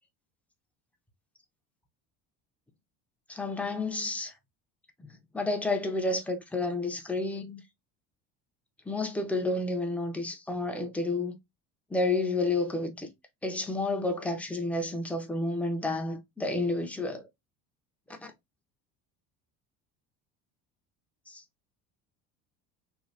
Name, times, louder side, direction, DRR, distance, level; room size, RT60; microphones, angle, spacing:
voice 1, 3.3-4.3 5.3-7.6 8.9-11.4 11.9-13.1 13.4-17.2 18.2-18.3 21.3-21.4, left 2 dB, 5° left, 0.5 m, -30 dB
3.2 x 2.1 x 2.5 m
cardioid pair, 135°, 31 cm